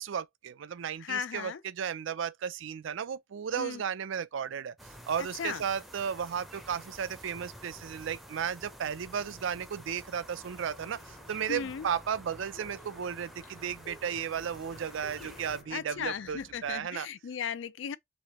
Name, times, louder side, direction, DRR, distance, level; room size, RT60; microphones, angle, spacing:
voice 1, 0.0-17.1, right 7 dB, 75° right, 0.4 m, -34 dB
voice 2, 1.0-1.6 3.6-3.8 5.2-5.6 11.5-11.9 15.7-18.0, left 7 dB, 70° left, 0.4 m, -36 dB
sound 1, 4.8-15.6, equal, ahead, 0.5 m, -50 dB
sound 2, 10.2-16.9, left 2 dB, 40° left, 0.8 m, -54 dB
3.6 x 3.1 x 2.9 m
head